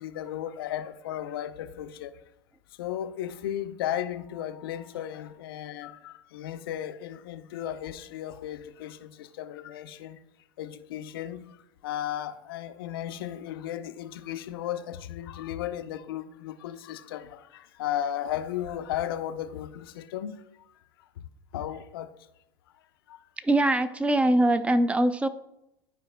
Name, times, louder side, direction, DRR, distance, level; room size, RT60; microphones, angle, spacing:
voice 1, 0.0-2.1 2.8-5.9 6.3-8.9 9.4-10.2 10.6-11.4 11.8-17.2 17.8-19.7 20.1-20.3 21.5-22.1, left 11 dB, 70° left, 0.6 m, -34 dB
voice 2, 23.4-25.3, right 1 dB, 10° right, 0.5 m, -22 dB
11.5 x 4.7 x 2.2 m
hypercardioid pair, 90°, 13 cm